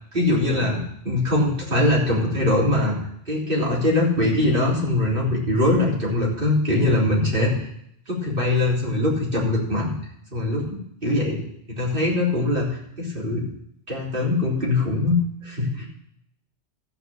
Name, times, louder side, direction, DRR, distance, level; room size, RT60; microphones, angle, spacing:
voice 1, 0.1-3.0 3.3-7.7 8.1-9.9 10.3-11.4 11.7-13.4 13.9-15.9, left 2 dB, 45° right, -4 dB, 3.6 m, -22 dB
14.0 x 6.0 x 7.0 m, 0.72 s
omnidirectional pair, 1.2 m